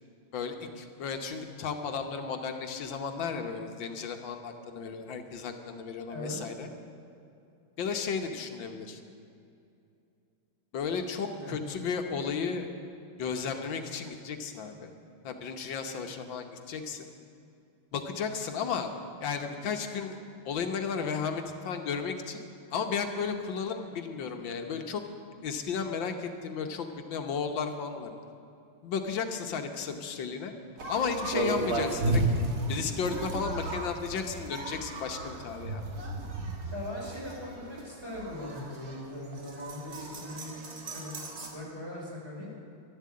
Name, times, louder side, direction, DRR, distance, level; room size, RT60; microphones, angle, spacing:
voice 1, 0.3-6.7 7.8-9.0 10.7-12.7 13.2-14.9 15.2-17.1 17.9-18.9 19.2-20.2 20.4-22.4 22.7-25.0 25.4-28.1 28.8-30.5 30.9-32.2 32.7-35.8, left 6 dB, 70° left, 5 dB, 1.7 m, -34 dB
voice 2, 6.1-6.4 11.3-11.6 36.7-40.5 40.9-41.1 41.5-42.5, left 1 dB, 10° right, -5 dB, 4.5 m, -40 dB
sound 1, 30.8-41.5, right 2 dB, 50° right, 2.1 m, -34 dB
12.0 x 11.5 x 8.5 m, 2.5 s
omnidirectional pair, 2.2 m